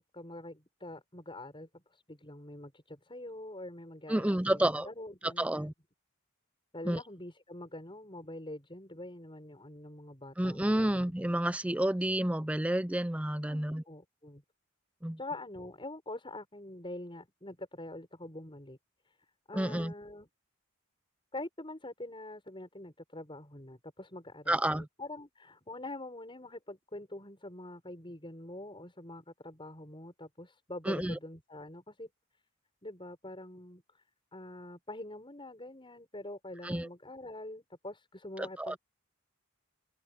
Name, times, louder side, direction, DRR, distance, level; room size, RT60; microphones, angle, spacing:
voice 1, 0.1-5.7 6.7-11.1 13.5-14.4 15.2-18.8 19.0-19.2 19.5-20.3 21.3-32.1 32.8-34.0 34.3-38.8, left 1 dB, 25° left, 6.9 m, -45 dB
voice 2, 4.1-4.9 5.4-5.7 6.9-7.0 10.4-13.8 15.0-15.2 19.5-19.9 24.5-24.9 30.9-31.2 36.6-36.9 38.6-38.8, right 1 dB, 5° right, 0.5 m, -30 dB
open air
head